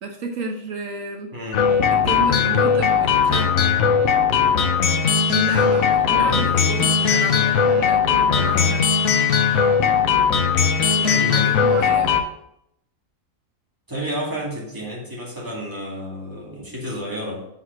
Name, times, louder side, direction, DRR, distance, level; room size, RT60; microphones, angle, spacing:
voice 1, 0.0-1.3 1.9-3.5 5.3-8.8 10.9-12.2, right 3 dB, 75° right, 3 dB, 1.2 m, -31 dB
voice 2, 1.3-1.7 5.6-6.5 11.1-11.5 13.9-17.5, equal, 15° right, -4 dB, 2.2 m, -31 dB
sound 1, 1.5-12.2, left 6 dB, 90° left, 1.1 m, -18 dB
5.8 x 5.6 x 5.9 m, 0.77 s
omnidirectional pair, 1.4 m